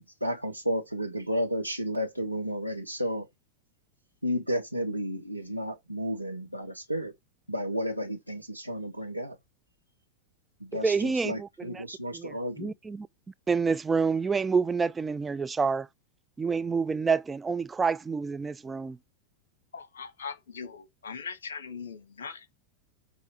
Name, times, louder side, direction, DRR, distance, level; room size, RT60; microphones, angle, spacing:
voice 1, 0.0-3.3 4.2-7.1 7.5-9.4 10.6-12.7, equal, 90° right, 0.9 m, -32 dB
voice 2, 10.7-11.8 12.1-13.1 13.5-15.9 16.4-19.0, right 5 dB, 15° right, 0.4 m, -28 dB
voice 3, 19.7-22.5, left 5 dB, 65° left, 1.3 m, -40 dB
7.9 x 3.2 x 5.8 m
figure-of-eight pair, 90°, 0 cm